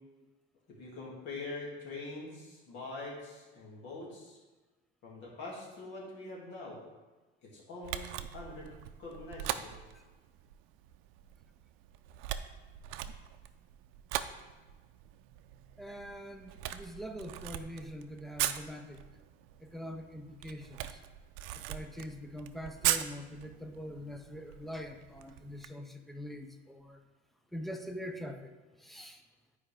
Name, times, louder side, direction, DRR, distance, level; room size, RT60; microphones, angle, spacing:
voice 1, 0.7-4.4 5.0-6.8 7.4-8.7 9.0-9.7, left 2 dB, 60° left, -4 dB, 2.4 m, -44 dB
Camera, 7.8-25.7, right 12 dB, 80° right, 0.4 m, -40 dB
voice 2, 15.8-19.0 19.7-20.8 21.7-27.0 27.5-28.5 28.8-29.2, equal, ahead, 4 dB, 0.4 m, -43 dB
9.9 x 4.8 x 3.4 m, 1.2 s
cardioid pair, 165°, 21 cm